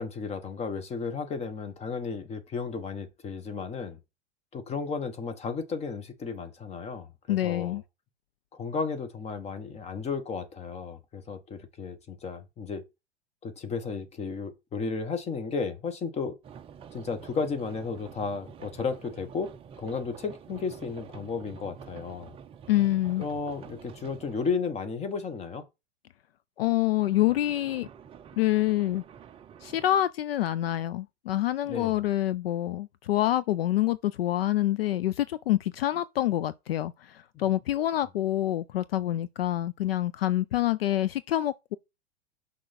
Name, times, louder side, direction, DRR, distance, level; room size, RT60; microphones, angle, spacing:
voice 1, 0.0-4.0 4.5-7.8 8.5-12.8 13.4-16.4 16.9-22.3 23.2-25.6 31.6-32.0 37.3-37.4, left 5 dB, 20° left, 1.3 m, -34 dB
voice 2, 7.3-7.8 22.7-23.2 26.6-27.9 28.4-29.0 29.6-41.8, left 14 dB, 60° left, 0.5 m, -26 dB
sound 1, 16.4-24.6 26.8-29.9, right 7 dB, 15° right, 0.5 m, -48 dB
6.1 x 5.6 x 4.2 m
figure-of-eight pair, 100°, 33 cm